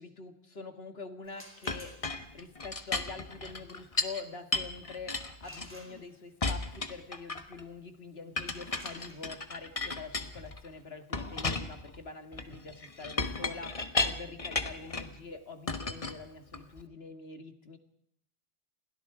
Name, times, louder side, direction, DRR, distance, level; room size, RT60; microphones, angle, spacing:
voice 1, 0.0-17.8, left 4 dB, 70° left, 8 dB, 2.3 m, -45 dB
sound 1, 1.2-2.4 5.4-6.4 8.3-14.0, equal, 10° right, 4.2 m, -55 dB
Chink clink, 1.7-4.2 4.5-6.0 6.4-7.6 8.4-10.7 11.1-15.2 15.7-16.8, left 3 dB, 35° left, 1.4 m, -35 dB
30.0 x 22.5 x 5.0 m, 0.73 s
omnidirectional pair, 1.1 m